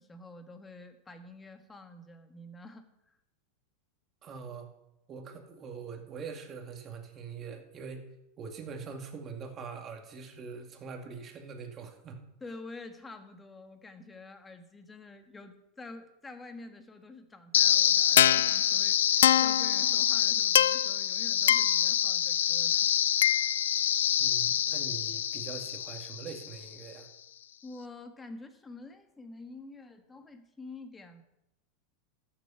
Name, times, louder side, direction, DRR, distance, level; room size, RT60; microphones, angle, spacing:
voice 1, 0.0-3.2 12.4-22.9 27.6-31.2, left 2 dB, 15° left, 7 dB, 1.4 m, -48 dB
voice 2, 4.2-4.7 5.1-8.1 8.4-12.2 24.2-27.1, right 5 dB, 30° right, 4 dB, 2.2 m, -43 dB
sound 1, 17.5-26.6, left 11 dB, 90° left, 0.3 m, -25 dB
13.5 x 7.7 x 5.7 m, 0.87 s
supercardioid pair, 125°, 0 cm